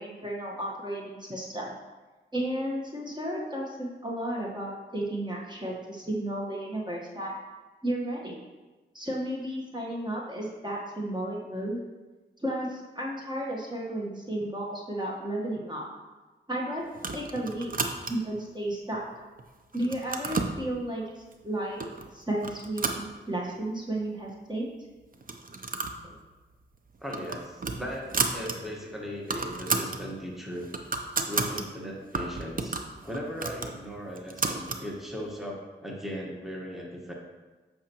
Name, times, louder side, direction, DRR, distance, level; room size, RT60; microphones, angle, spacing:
voice 1, 0.0-1.7 2.3-7.3 7.8-8.4 8.9-11.8 12.4-15.9 16.5-17.7 18.1-19.0 19.7-21.8 22.1-24.7 26.0-26.2, right 1 dB, 20° right, -3 dB, 1.3 m, -33 dB
sound 1, 16.9-18.4 18.9-19.4 19.7-20.6 21.3-21.4 21.8-22.1 22.4-23.6 24.0-24.1 24.3-24.4 25.1-26.0 26.3-26.5 26.9-28.6 28.9-29.0 29.2-30.0 30.4-31.6 32.1-34.8, right 3 dB, 45° right, 0.7 m, -32 dB
voice 2, 27.0-30.7 31.3-37.1, equal, ahead, -2 dB, 1.3 m, -38 dB
8.5 x 5.9 x 3.0 m, 1.2 s
cardioid pair, 60°, 20 cm